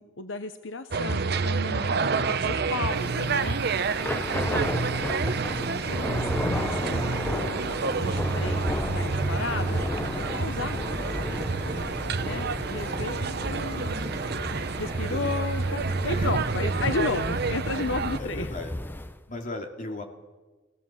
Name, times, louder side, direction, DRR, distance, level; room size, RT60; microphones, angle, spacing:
voice 1, 0.0-3.6 4.7-5.2 5.6-10.8 11.6-14.0 14.8-18.5, left 3 dB, 80° left, 9 dB, 0.9 m, -34 dB
sound 1, 0.9-18.2, right 4 dB, 60° right, 0.8 m, -29 dB
Thunder / Rain, 2.9-19.2, left 1 dB, 10° left, 0.7 m, -34 dB
voice 2, 4.2-4.8 5.5-6.0 11.2-12.2 14.8-15.3 16.0-16.3 18.2-18.7 19.3-20.0, left 2 dB, 45° left, 3 dB, 2.5 m, -40 dB
sound 2, 4.9-14.2, right 1 dB, 20° right, 7.5 m, -51 dB
22.5 x 16.5 x 7.3 m, 1.3 s
head